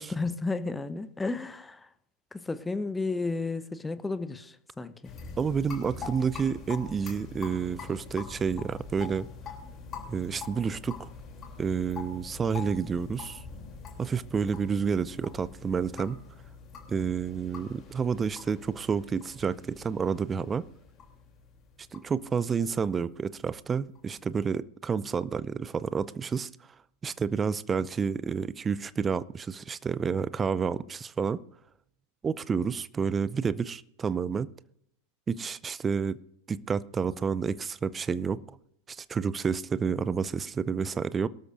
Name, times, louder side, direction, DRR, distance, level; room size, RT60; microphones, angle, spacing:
voice 1, 0.0-1.9 2.3-5.1, left 3 dB, 10° left, 0.8 m, -33 dB
sound 1, 5.0-24.3, left 5 dB, 25° left, 3.1 m, -44 dB
voice 2, 5.4-9.3 10.1-11.1 11.6-13.4 14.0-16.2 16.9-20.6 21.9-26.5 27.0-31.4 32.2-34.5 35.3-36.2 36.5-38.6 38.9-41.3, right 6 dB, 20° right, 0.5 m, -29 dB
22.5 x 13.0 x 2.6 m
figure-of-eight pair, 90°, 0 cm